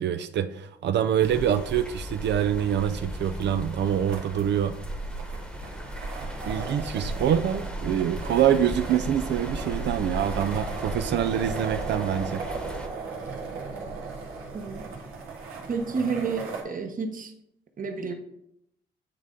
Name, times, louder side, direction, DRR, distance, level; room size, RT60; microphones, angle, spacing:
voice 1, 0.0-4.8 6.4-12.4, right 9 dB, 65° right, 9 dB, 0.4 m, -25 dB
sound 1, 1.2-12.9, equal, 5° left, 1.1 m, -36 dB
sound 2, 3.8-16.6, right 4 dB, 85° right, 1.5 m, -37 dB
voice 2, 14.5-14.9 15.7-17.3 17.8-18.1, right 5 dB, 45° right, 5 dB, 1.0 m, -30 dB
8.8 x 3.6 x 3.8 m, 0.79 s
cardioid pair, 90°, 20 cm